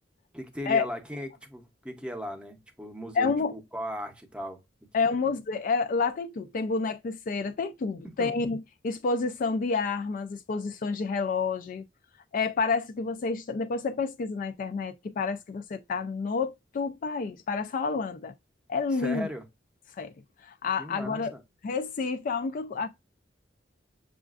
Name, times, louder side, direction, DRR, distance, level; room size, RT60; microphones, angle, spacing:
voice 1, 0.3-4.6 8.0-8.4 19.0-19.4 20.8-21.4, equal, 5° right, 0.7 m, -37 dB
voice 2, 3.1-3.5 4.9-11.9 12.3-18.3 18.7-19.3 20.0-20.1 20.4-21.3 21.6-22.9, left 4 dB, 45° left, 0.3 m, -29 dB
6.8 x 2.4 x 2.3 m
head